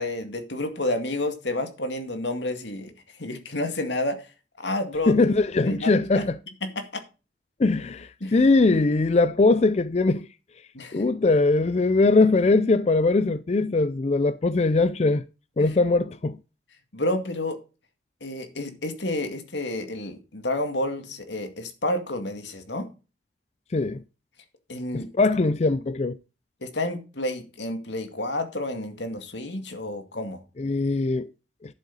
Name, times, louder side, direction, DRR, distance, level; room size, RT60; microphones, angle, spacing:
voice 1, 0.0-2.9 3.2-4.3 4.6-5.1 5.6-6.2 6.6-7.0 8.2-8.4 10.7-11.1 15.6-15.7 16.9-17.6 18.2-22.9 24.7-25.1 26.6-30.4, left 1 dB, 85° left, 2.2 m, -30 dB
voice 2, 5.1-6.3 7.6-10.3 10.9-15.2 15.6-16.4 23.7-24.0 24.9-26.2 30.6-31.3, left 3 dB, 35° left, 0.4 m, -21 dB
11.0 x 7.7 x 4.0 m
head